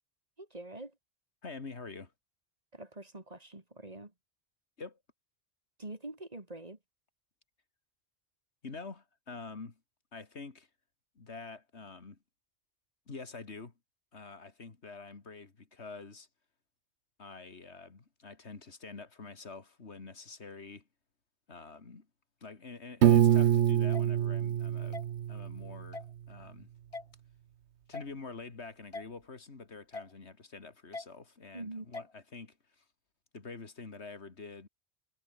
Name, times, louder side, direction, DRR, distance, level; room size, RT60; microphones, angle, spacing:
voice 1, 0.4-0.9 2.7-4.1 5.8-6.8 31.5-31.9, right 2 dB, 35° right, 2.8 m, -44 dB
voice 2, 1.4-2.1 4.8-5.0 8.6-9.8 10.1-10.7 11.2-12.2 13.1-13.7 14.1-16.3 17.2-20.9 21.5-22.1 22.4-25.0 25.3-26.7 27.9-32.8 33.3-34.7, left 4 dB, 75° left, 2.5 m, -46 dB
Piano, 23.0-25.9, right 10 dB, 85° right, 1.1 m, -25 dB
sound 1, 23.9-24.0 24.9-25.0 25.9-26.1 26.9-27.0 27.9-28.1 28.9-29.1 29.9-30.1 30.9-31.1 31.9-32.1, left 3 dB, 30° left, 1.8 m, -41 dB
omnidirectional pair, 1.1 m